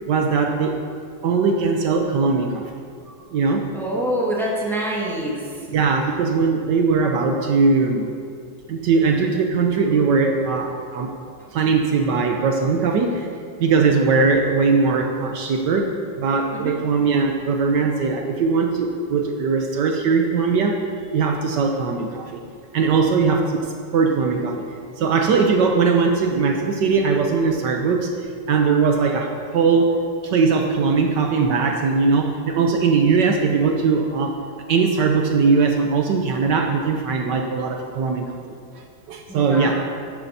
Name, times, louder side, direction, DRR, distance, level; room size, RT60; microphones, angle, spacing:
voice 1, 0.1-0.8 1.2-2.7 3.3-3.6 5.7-8.1 8.7-11.1 11.5-13.3 13.6-20.8 21.1-22.4 22.7-24.6 25.0-28.1 28.5-29.9 30.2-34.3 34.7-38.8 39.1-39.7, right 4 dB, 70° right, 3 dB, 1.3 m, -20 dB
voice 2, 3.7-5.4 16.6-16.7 39.3-39.7, right 1 dB, ahead, -5 dB, 1.8 m, -25 dB
12.0 x 11.5 x 2.8 m, 2.2 s
omnidirectional pair, 2.0 m